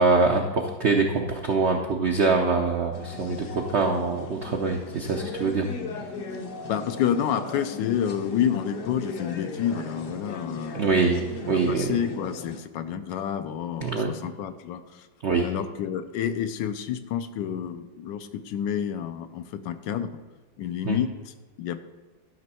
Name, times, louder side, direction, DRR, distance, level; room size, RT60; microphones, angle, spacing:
voice 1, 0.0-5.7 10.7-11.9 13.8-14.1 15.2-15.5 20.8-21.0, right 4 dB, 70° right, 3 dB, 0.6 m, -24 dB
sound 1, 2.9-12.6, left 3 dB, 55° left, 1.0 m, -38 dB
voice 2, 6.3-10.9 11.4-15.1 15.4-20.2 20.6-21.8, left 9 dB, 75° left, 10 dB, 1.2 m, -29 dB
12.5 x 6.1 x 4.2 m, 1.2 s
omnidirectional pair, 2.1 m